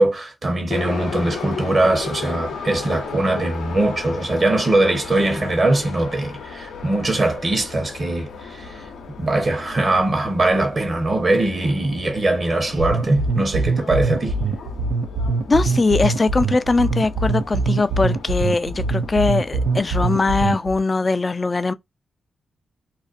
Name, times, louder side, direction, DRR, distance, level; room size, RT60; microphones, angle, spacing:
voice 1, 0.0-8.3 8.6-8.7 9.2-14.4, right 2 dB, 45° right, 1.0 m, -21 dB
Subway metro underground, 0.7-20.5, left 5 dB, 85° left, 0.6 m, -36 dB
sound 1, 12.8-20.8, right 3 dB, 85° right, 0.4 m, -23 dB
voice 2, 15.5-21.7, left 3 dB, 35° left, 0.3 m, -20 dB
2.4 x 2.2 x 2.5 m
supercardioid pair, 50°, 0 cm